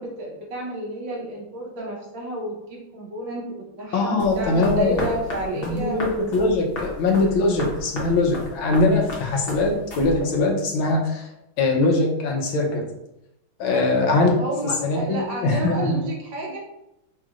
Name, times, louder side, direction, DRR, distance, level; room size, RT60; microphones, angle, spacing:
voice 1, 0.0-3.5 3.7-6.1 14.4-16.6, right 1 dB, 75° right, -2 dB, 1.7 m, -30 dB
voice 2, 3.9-5.1 5.6-11.3 11.6-12.8 13.6-14.3 14.8-16.0, left 2 dB, 85° left, 0 dB, 1.6 m, -21 dB
sound 1, 4.2-10.5, left 1 dB, 45° left, 0.7 m, -34 dB
5.2 x 3.1 x 2.4 m, 0.89 s
omnidirectional pair, 2.2 m